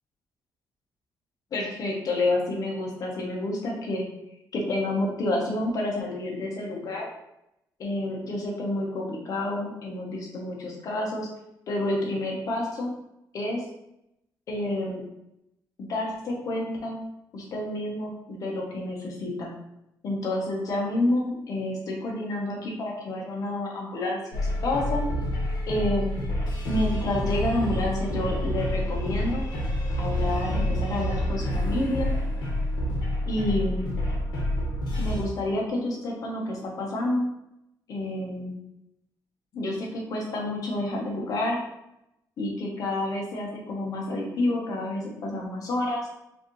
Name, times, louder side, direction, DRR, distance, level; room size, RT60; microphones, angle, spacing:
voice 1, 1.5-4.1 4.5-7.1 7.8-11.3 11.7-12.9 13.3-13.6 14.5-15.0 15.8-17.0 17.3-19.5 20.0-25.0 25.7-26.2 26.7-29.4 30.0-32.1 33.3-33.9 35.0-37.3 37.9-38.6 39.5-41.6 42.4-46.1, left 1 dB, 50° left, -1 dB, 1.0 m, -29 dB
sound 1, 24.3-35.2, left 1 dB, 75° left, 1.2 m, -28 dB
4.9 x 2.7 x 3.2 m, 0.83 s
cardioid pair, 160°, 8 cm